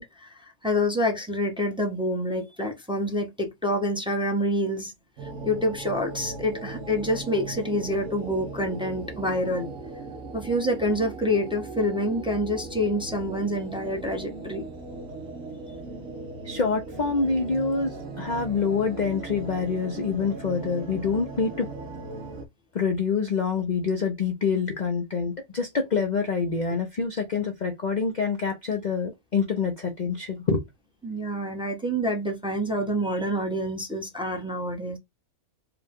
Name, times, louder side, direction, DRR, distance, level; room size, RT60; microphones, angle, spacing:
voice 1, 0.0-4.9 5.4-9.7 10.3-14.7 31.0-35.0, equal, 5° right, 0.9 m, -27 dB
sound 1, 5.2-22.4, right 3 dB, 65° right, 1.3 m, -38 dB
voice 2, 16.4-21.7 22.7-30.6, left 5 dB, 45° left, 0.6 m, -26 dB
4.9 x 2.4 x 3.5 m
omnidirectional pair, 1.5 m